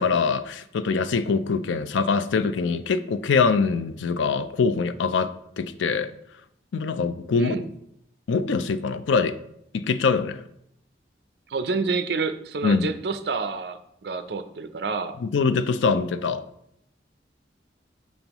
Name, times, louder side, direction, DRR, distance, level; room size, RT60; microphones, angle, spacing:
voice 1, 0.0-6.1 6.7-7.6 8.3-9.4 9.7-10.4 12.6-12.9 15.2-16.4, left 5 dB, 90° left, 12 dB, 0.4 m, -23 dB
voice 2, 7.4-7.7 11.5-15.1, right 4 dB, 65° right, 10 dB, 0.5 m, -28 dB
6.2 x 5.3 x 3.0 m, 0.76 s
head